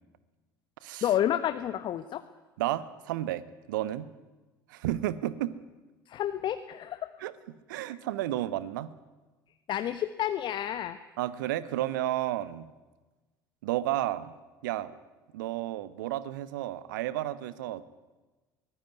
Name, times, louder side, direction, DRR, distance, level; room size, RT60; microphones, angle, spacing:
voice 1, 1.0-2.2 6.1-7.1 9.7-11.0, left 11 dB, 45° left, 11 dB, 1.1 m, -30 dB
voice 2, 2.6-4.1 4.7-5.6 7.2-7.3 7.7-8.9 11.2-12.7 13.6-14.3 14.6-14.9 15.3-17.8, right 14 dB, 65° right, 16 dB, 1.2 m, -32 dB
23.0 x 18.5 x 9.5 m, 1.2 s
figure-of-eight pair, 65°, 11 cm